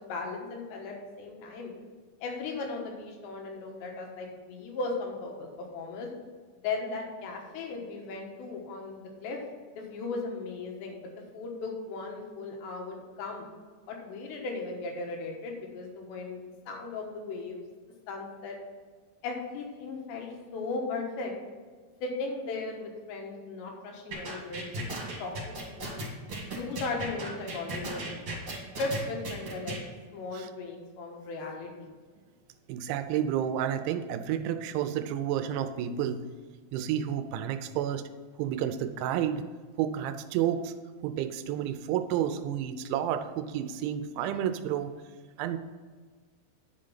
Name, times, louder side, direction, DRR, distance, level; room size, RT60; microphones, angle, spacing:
voice 1, 0.0-1.7 2.2-6.1 6.6-9.4 9.7-13.5 13.9-17.6 18.1-18.6 19.2-21.3 22.0-24.7 25.2-26.1 26.5-28.4 28.8-29.8 30.1-31.9, left 3 dB, 75° left, 1 dB, 3.5 m, -37 dB
sound 1, 24.1-29.8, right 2 dB, 40° right, 2.8 m, -36 dB
voice 2, 32.7-36.2 36.7-38.0 38.4-39.5 39.8-40.7 41.0-44.9 45.4-45.6, right 10 dB, 85° right, 9 dB, 3.0 m, -30 dB
10.0 x 5.2 x 5.7 m, 1.5 s
omnidirectional pair, 5.2 m